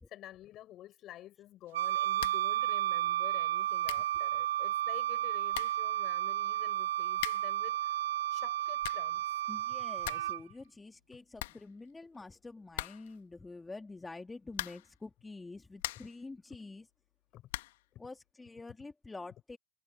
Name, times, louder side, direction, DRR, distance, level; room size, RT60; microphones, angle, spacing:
voice 1, 0.1-8.0 8.3-9.2 10.0-10.2 15.9-16.1 17.3-17.5, left 13 dB, 45° left, 8.0 m, -50 dB
Wind instrument woodwind instrument, 1.7-10.4, right 13 dB, 70° right, 0.5 m, -32 dB
sound 1, 2.2-2.5 2.8-2.9 3.5-3.6 3.8-4.2 5.1-5.2 5.5-5.9 7.1-7.6 8.5-9.2 9.5-9.6 9.8-10.4 10.6-10.7 11.0-11.1 11.4-12.2 12.7-13.2 14.5-15.0 15.5-16.2 17.5-17.9, left 18 dB, 65° left, 2.1 m, -42 dB
voice 2, 9.5-16.9 18.0-19.6, left 3 dB, 10° left, 2.5 m, -47 dB
hypercardioid pair, 85°, 0 cm